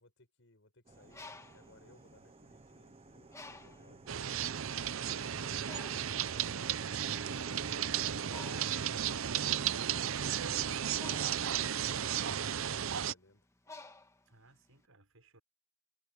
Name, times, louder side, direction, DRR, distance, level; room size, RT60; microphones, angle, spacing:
voice 1, 0.0-4.5 4.8-13.5, left 2 dB, 65° left, 6.6 m, -64 dB
Bird, 0.9-2.8 3.3-4.0 4.7-4.8 5.1-14.8, left 3 dB, 15° left, 1.8 m, -53 dB
sound 1, 0.9-8.5, right 2 dB, 30° right, 0.8 m, -55 dB
voice 2, 3.8-4.2 14.2-15.4, right 2 dB, 90° right, 6.6 m, -63 dB
sound 2, 4.1-13.1, right 9 dB, 70° right, 0.6 m, -34 dB
head